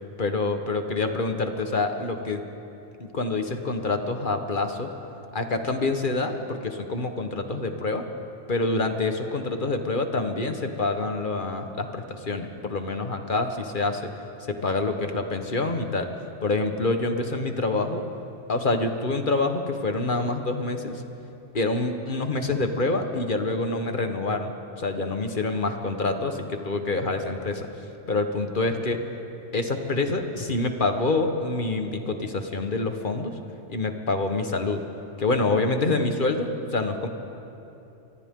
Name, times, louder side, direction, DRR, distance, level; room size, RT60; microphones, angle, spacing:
voice 1, 0.2-2.4 3.0-4.9 5.3-8.1 8.5-14.0 14.5-16.1 16.4-18.0 18.5-21.0 21.5-27.7 28.1-29.0 29.5-33.4 33.7-34.8 35.2-37.1, left 3 dB, 45° left, 6 dB, 1.4 m, -26 dB
29.5 x 24.5 x 3.8 m, 2.9 s
omnidirectional pair, 1.2 m